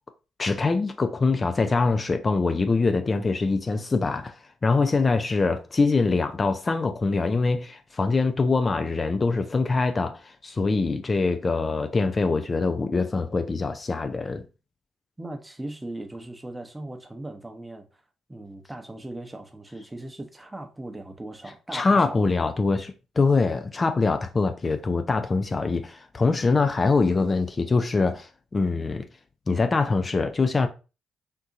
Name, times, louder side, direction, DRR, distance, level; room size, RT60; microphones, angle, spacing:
voice 1, 0.4-4.3 4.6-14.4 21.7-29.0 29.5-30.7, left 3 dB, 35° left, 0.4 m, -24 dB
voice 2, 15.2-17.9 18.3-22.5, right 1 dB, 15° right, 0.8 m, -39 dB
3.6 x 2.7 x 2.6 m
hypercardioid pair, 50°, 0 cm